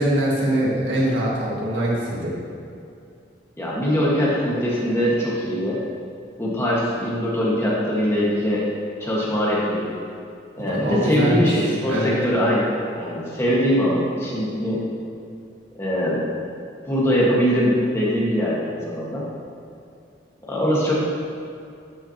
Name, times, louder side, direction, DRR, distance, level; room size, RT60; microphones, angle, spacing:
voice 1, 0.0-2.3 10.7-12.2, right 1 dB, 85° right, -5 dB, 1.8 m, -23 dB
voice 2, 3.6-5.8 6.4-8.6 9.0-9.9 10.5-12.7 13.0-14.9 15.8-16.3 16.8-19.3 20.4-20.9, equal, 15° left, -6 dB, 1.5 m, -22 dB
12.5 x 5.9 x 2.9 m, 2.5 s
head